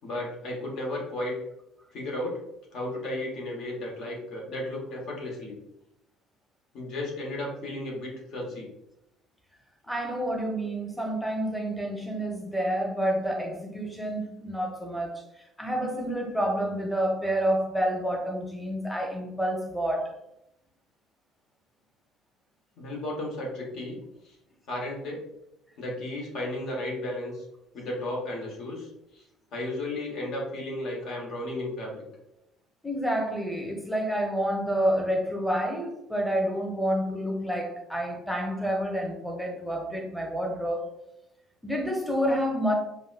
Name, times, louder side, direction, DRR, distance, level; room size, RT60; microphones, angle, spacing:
voice 1, 0.0-1.4 1.9-2.4 2.7-5.6 6.7-8.7 22.8-24.0 24.7-25.2 25.8-27.3 27.7-28.9 29.1-29.2 29.5-32.0, left 1 dB, 55° left, -2 dB, 1.1 m, -34 dB
voice 2, 9.9-15.3 15.6-20.1 32.8-40.8 41.6-42.7, equal, 5° left, 1 dB, 0.9 m, -29 dB
5.2 x 2.2 x 2.4 m, 0.85 s
figure-of-eight pair, 55°, 0 cm